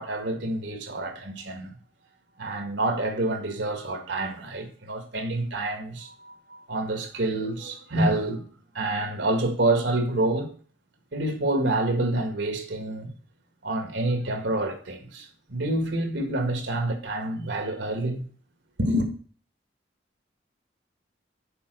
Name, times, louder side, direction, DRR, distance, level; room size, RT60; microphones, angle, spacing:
voice 1, 0.0-1.7 2.4-8.5 8.8-10.5 11.1-13.1 13.6-18.3 18.8-19.1, right 2 dB, 75° right, 1.7 m, -27 dB
6.9 x 4.9 x 6.5 m
head